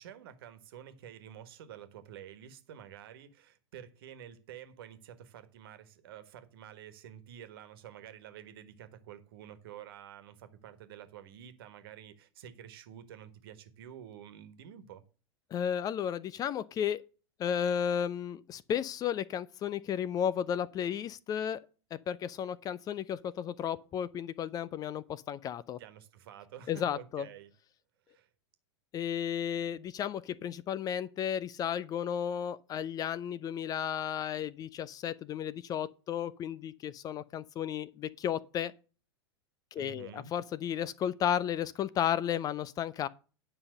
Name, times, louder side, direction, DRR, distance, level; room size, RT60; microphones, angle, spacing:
voice 1, 0.0-15.0 25.8-27.5 28.1-28.3 39.7-40.3, right 9 dB, 55° right, 1.5 m, -49 dB
voice 2, 15.5-17.0 17.4-21.6 21.9-25.8 26.7-27.3 28.9-38.7 39.7-43.1, left 9 dB, 25° left, 0.5 m, -33 dB
9.8 x 5.5 x 6.5 m
figure-of-eight pair, 90°, 14 cm